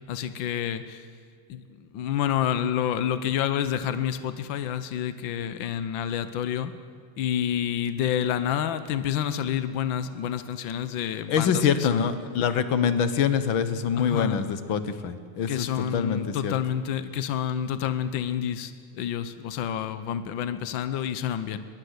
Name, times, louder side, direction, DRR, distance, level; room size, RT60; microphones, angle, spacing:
voice 1, 0.1-1.0 1.5-6.7 7.2-12.1 14.0-14.4 15.5-21.6, left 9 dB, 80° left, 12 dB, 1.0 m, -29 dB
voice 2, 11.3-15.7 15.9-16.5, left 7 dB, 55° left, 12 dB, 1.5 m, -25 dB
22.5 x 21.5 x 8.1 m, 2.1 s
omnidirectional pair, 3.3 m